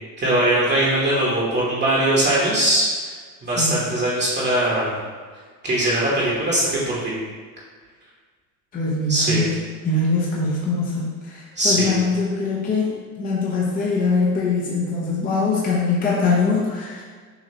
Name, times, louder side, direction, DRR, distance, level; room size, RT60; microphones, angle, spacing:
voice 1, 0.2-3.1 3.4-5.0 5.6-7.1 9.1-9.5 11.6-11.9, right 1 dB, 20° right, -6 dB, 1.2 m, -21 dB
voice 2, 8.7-9.5 9.8-12.9 13.2-17.0, left 3 dB, 15° left, -5 dB, 0.8 m, -22 dB
6.7 x 2.8 x 2.8 m, 1.5 s
supercardioid pair, 105°, 50 cm